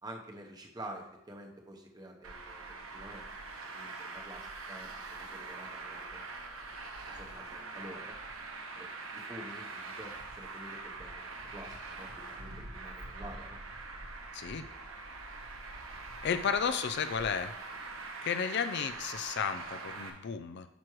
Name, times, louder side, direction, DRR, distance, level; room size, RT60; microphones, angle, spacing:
voice 1, 0.0-3.3 3.7-6.3 7.0-8.2 8.8-13.6 16.7-16.8, right 1 dB, 20° right, 2 dB, 0.9 m, -49 dB
Traffic noise roadway noise, 2.2-20.1, right 3 dB, 80° right, 1.0 m, -44 dB
voice 2, 14.3-14.6 16.2-17.5 18.2-20.7, left 6 dB, 55° left, 10 dB, 0.4 m, -33 dB
9.3 x 6.1 x 3.1 m, 0.82 s
head